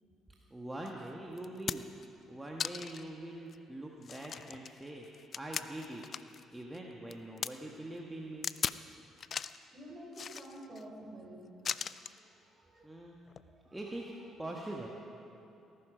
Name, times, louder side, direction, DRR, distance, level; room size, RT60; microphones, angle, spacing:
voice 1, 0.5-1.9 2.3-5.1 5.4-6.0 6.5-8.5 12.8-13.2 13.7-14.1 14.4-14.9, right 1 dB, 10° right, -1 dB, 1.5 m, -43 dB
sound 1, 0.9-1.0 1.4-2.0 2.6-3.1 3.5-3.6 4.0-6.4 6.7-7.5 8.4-8.8 9.2-9.6 10.1-10.8 11.6-12.2 13.3-13.4, left 7 dB, 50° left, 0.4 m, -38 dB
voice 2, 9.4-11.5 12.2-13.0 13.5-14.1, right 1 dB, 35° right, 0 dB, 4.1 m, -51 dB
19.0 x 11.5 x 5.1 m, 2.8 s
supercardioid pair, 70°, 0 cm